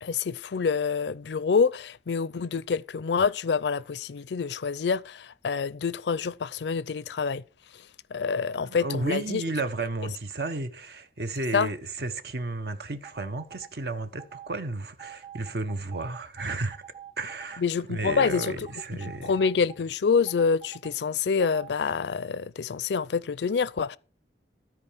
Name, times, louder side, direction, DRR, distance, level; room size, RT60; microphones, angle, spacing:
voice 1, 0.0-7.4 7.7-9.4 11.5-11.7 17.6-18.6 19.2-24.0, left 5 dB, 80° left, 0.5 m, -27 dB
voice 2, 8.6-16.8 17.2-17.6 17.9-19.3, right 2 dB, 65° right, 0.9 m, -33 dB
sound 1, 13.0-13.7 14.2-14.5 15.0-17.6 18.1-19.8 20.3-20.9 21.4-21.7, right 9 dB, 35° right, 0.8 m, -46 dB
13.5 x 4.7 x 7.2 m
head